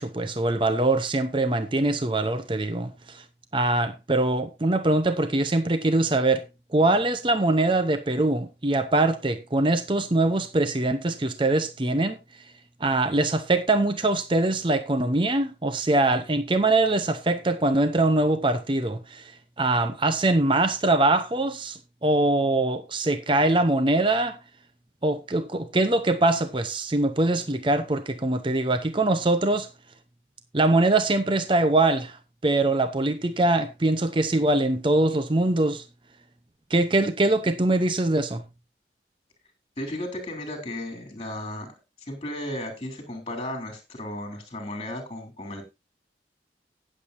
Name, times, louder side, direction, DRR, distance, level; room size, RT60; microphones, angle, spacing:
voice 1, 0.0-3.2 3.5-6.4 6.7-12.2 12.8-24.4 25.0-29.7 30.5-35.9 36.7-38.4, right 2 dB, 30° right, 0.7 m, -23 dB
voice 2, 39.8-41.7 42.0-45.6, left 1 dB, 30° left, 3.5 m, -34 dB
18.5 x 7.5 x 2.7 m
head